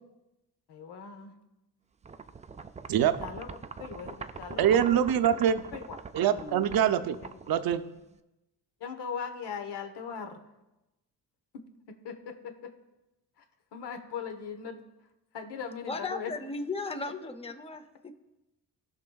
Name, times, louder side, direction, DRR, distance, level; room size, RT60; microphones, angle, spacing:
voice 1, 0.7-1.3 3.2-3.5 3.8-5.0 5.7-6.0 6.3-6.7 8.8-10.4 11.5-12.7 13.7-14.8 15.3-16.3, left 6 dB, 80° left, 7 dB, 1.1 m, -39 dB
sound 1, 2.0-8.2, right 5 dB, 20° right, 0.3 m, -43 dB
voice 2, 4.6-5.6 6.1-7.2 7.5-7.8, right 9 dB, 60° right, 11 dB, 0.6 m, -24 dB
voice 3, 15.9-18.1, left 3 dB, 15° left, 10 dB, 0.6 m, -36 dB
17.0 x 6.0 x 2.3 m, 0.98 s
cardioid pair, 90°, 40 cm